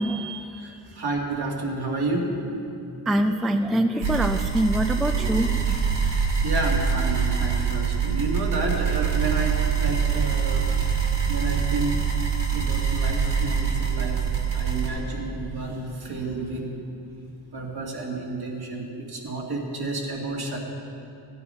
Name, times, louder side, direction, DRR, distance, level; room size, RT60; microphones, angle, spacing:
voice 1, 0.0-0.7 3.1-5.9, equal, ahead, 7 dB, 0.3 m, -25 dB
voice 2, 0.6-2.4 6.4-11.0 11.3-12.0 12.5-16.7 17.5-20.6, right 2 dB, 60° right, -2 dB, 2.3 m, -30 dB
sound 1, 4.0-14.9, right 7 dB, 75° right, 2.6 m, -24 dB
15.0 x 8.8 x 5.6 m, 2.7 s
cardioid pair, 100°, 43 cm